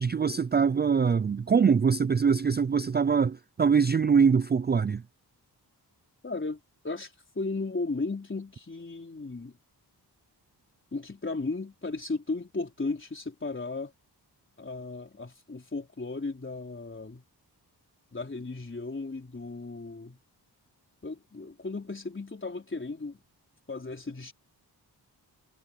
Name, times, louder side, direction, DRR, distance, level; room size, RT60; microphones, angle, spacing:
voice 1, 0.0-5.0, right 6 dB, 25° right, 0.3 m, -23 dB
voice 2, 6.2-6.6 6.8-9.6 10.9-13.9 14.6-17.2 18.1-20.2 21.0-23.2 23.7-24.3, left 3 dB, 30° left, 4.2 m, -35 dB
wide cardioid pair, 115°, 40 cm